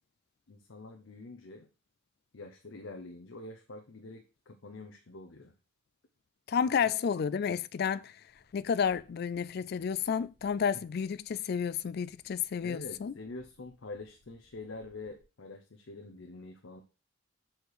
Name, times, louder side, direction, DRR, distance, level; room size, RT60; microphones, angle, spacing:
voice 1, 0.5-1.7 2.3-5.5 6.6-6.7 10.7-10.8 12.6-16.8, left 2 dB, 65° left, 0.7 m, -46 dB
voice 2, 6.5-8.1 8.5-13.1, left 7 dB, 50° left, 0.3 m, -31 dB
sound 1, 8.3-15.2, equal, 20° right, 2.3 m, -68 dB
6.5 x 4.4 x 4.7 m
head